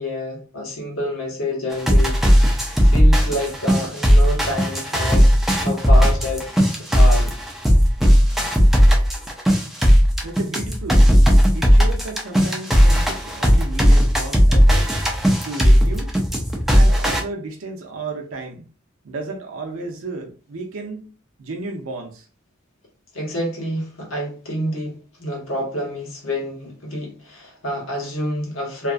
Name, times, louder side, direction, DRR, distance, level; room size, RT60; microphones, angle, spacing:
voice 1, 0.0-2.2 2.7-5.3 5.6-6.5 6.9-7.3 23.1-28.9, left 1 dB, 85° left, 1.1 m, -28 dB
sound 1, 1.7-17.2, equal, ahead, 0.4 m, -16 dB
voice 2, 10.2-11.1 11.5-14.9 15.4-16.1 16.7-18.7 19.0-21.1 21.4-22.3, right 3 dB, 85° right, 0.6 m, -33 dB
2.7 x 2.3 x 2.4 m
head